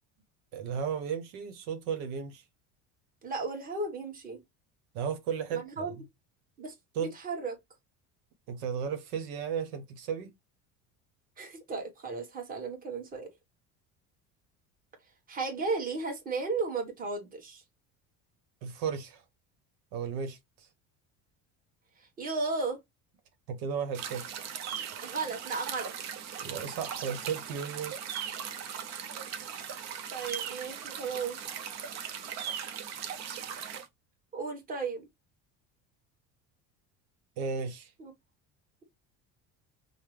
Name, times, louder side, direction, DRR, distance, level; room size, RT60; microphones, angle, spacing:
voice 1, 0.5-2.4 4.9-5.6 6.9-7.1 8.5-10.3 18.6-19.2 19.9-20.4 23.5-24.3 26.4-27.9 37.4-37.9, right 7 dB, 85° right, 1.0 m, -34 dB
voice 2, 3.2-4.4 5.5-5.9 6.6-6.7 7.0-7.6 11.4-13.3 15.3-17.6 22.0-22.8 25.0-25.9 30.1-31.4 34.3-35.1 38.0-38.1, right 4 dB, 25° right, 1.4 m, -34 dB
sound 1, 23.9-33.9, right 8 dB, 50° right, 0.8 m, -39 dB
5.6 x 2.1 x 3.2 m
cardioid pair, 140°, 33 cm